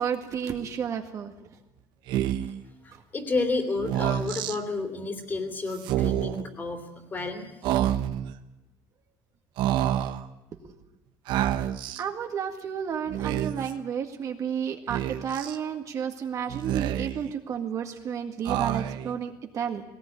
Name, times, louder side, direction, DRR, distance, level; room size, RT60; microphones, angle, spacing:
voice 1, 0.0-1.3 12.0-19.8, right 8 dB, 40° right, 5 dB, 1.9 m, -31 dB
Speech, 2.1-2.6 3.8-4.6 5.8-6.4 7.6-8.3 9.6-10.2 11.3-12.0 13.1-13.7 14.9-15.6 16.5-17.3 18.4-19.1, right 12 dB, 75° right, 1.2 m, -28 dB
voice 2, 2.8-7.5, left 3 dB, 25° left, 7 dB, 3.0 m, -31 dB
19.5 x 18.5 x 9.8 m, 0.95 s
cardioid pair, 165°, 8 cm